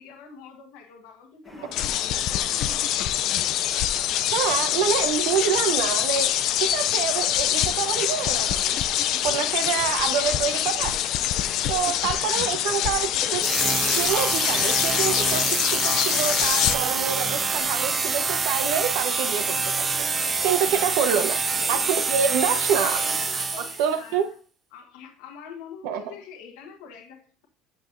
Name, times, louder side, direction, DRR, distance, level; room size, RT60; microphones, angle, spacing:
voice 1, 0.0-3.5 21.4-22.0 22.8-24.4 24.7-27.5, left 6 dB, 80° left, 2 dB, 1.2 m, -45 dB
sound 1, 1.4-17.6, equal, ahead, 1.3 m, -45 dB
sound 2, 1.7-16.7, left 12 dB, 50° left, 0.5 m, -25 dB
voice 2, 4.3-6.3 6.6-8.8 9.2-11.0 11.7-13.4 14.0-21.4 21.7-23.0 23.6-24.3 25.8-26.0, right 8 dB, 75° right, 8 dB, 1.0 m, -27 dB
sound 3, 13.4-24.0, right 4 dB, 20° right, 0.5 m, -26 dB
8.6 x 7.4 x 2.6 m, 0.39 s
cardioid pair, 175°, 0 cm